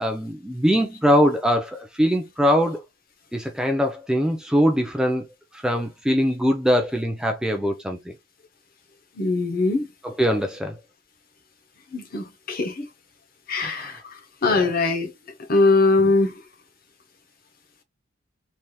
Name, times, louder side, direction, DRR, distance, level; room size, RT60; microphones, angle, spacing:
voice 1, 0.0-2.8 3.3-5.3 5.5-8.1 10.0-10.8 13.6-14.0 14.5-14.7, equal, 5° right, 0.4 m, -22 dB
voice 2, 9.2-9.9 11.9-12.9 13.5-14.0 14.4-15.1 15.5-16.3, left 3 dB, 45° left, 0.7 m, -21 dB
3.3 x 2.8 x 2.2 m
head